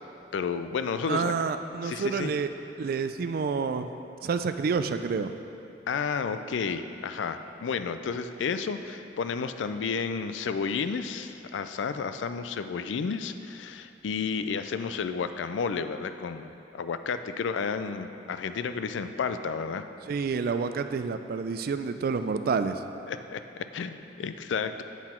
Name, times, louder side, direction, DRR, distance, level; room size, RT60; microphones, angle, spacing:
voice 1, 0.3-1.3 1.8-2.3 5.9-19.8 23.1-24.8, left 5 dB, 90° left, 10 dB, 0.4 m, -31 dB
voice 2, 1.1-3.9 4.2-5.3 20.1-22.8, right 5 dB, 55° right, 10 dB, 0.3 m, -29 dB
8.2 x 5.9 x 4.4 m, 2.8 s
head